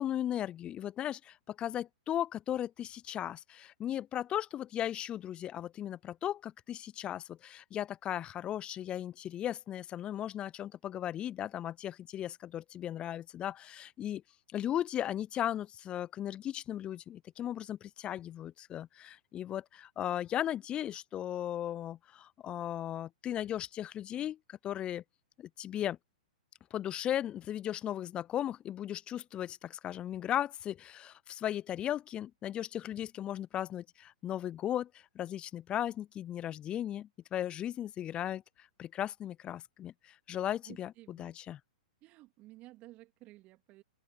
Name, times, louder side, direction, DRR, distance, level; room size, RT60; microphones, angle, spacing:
voice 1, 0.0-14.2 14.5-25.0 25.4-26.0 26.7-34.9 35.2-41.6, left 11 dB, 25° left, 0.4 m, -36 dB
voice 2, 40.6-41.3 42.0-43.8, right 17 dB, 35° right, 3.1 m, -54 dB
open air
hypercardioid pair, 115°, 4 cm